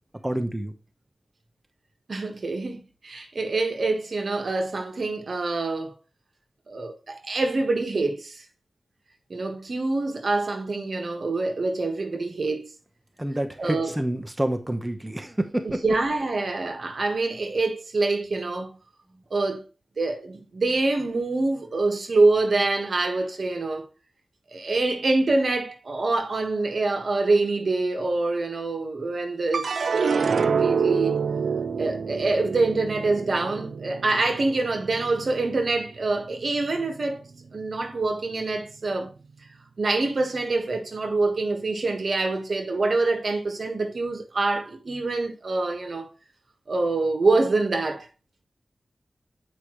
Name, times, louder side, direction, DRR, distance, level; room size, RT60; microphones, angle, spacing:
voice 1, 0.2-0.7 13.2-15.8, right 1 dB, 15° right, 0.9 m, -28 dB
voice 2, 2.1-5.9 6.7-8.4 9.3-12.7 13.6-13.9 15.8-18.8 19.3-19.6 20.0-23.8 24.5-31.2 31.8-37.2 37.5-39.1 39.8-46.1 46.7-48.1, right 3 dB, 70° right, 1.4 m, -25 dB
sound 1, 29.5-36.0 36.4-37.1, right 5 dB, 85° right, 0.4 m, -27 dB
8.2 x 4.9 x 3.0 m
cardioid pair, 55°, 0 cm